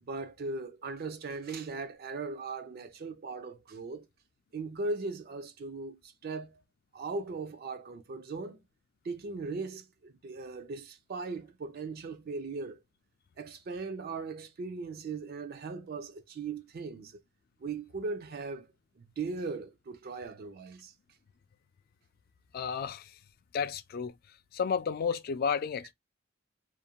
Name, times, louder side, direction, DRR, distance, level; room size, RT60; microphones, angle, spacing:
voice 1, 0.0-4.1 4.5-6.6 6.9-8.6 9.0-12.8 13.4-17.2 17.6-18.7 19.0-20.9, right 3 dB, 50° right, 0.4 m, -38 dB
voice 2, 22.5-23.1 23.5-24.1 24.5-25.9, left 6 dB, 50° left, 0.3 m, -31 dB
2.5 x 2.1 x 2.7 m
head